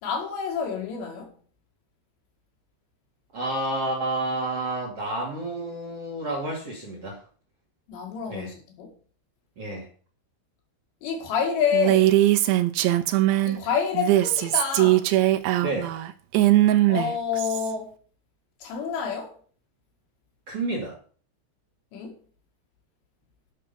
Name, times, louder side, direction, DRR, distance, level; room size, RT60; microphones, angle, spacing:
voice 1, 0.0-1.3 7.9-8.9 11.0-12.2 13.5-15.1 16.9-17.9 18.6-19.3 21.9-22.2, left 7 dB, 75° left, 4.2 m, -28 dB
voice 2, 3.3-7.2 8.3-8.5 9.6-9.9 15.6-15.9 20.5-21.0, right 1 dB, 40° right, 3.0 m, -30 dB
Female speech woman speaking, 11.7-13.6 13.9-17.7, right 15 dB, 80° right, 2.9 m, -20 dB
10.0 x 6.5 x 6.9 m
omnidirectional pair, 5.1 m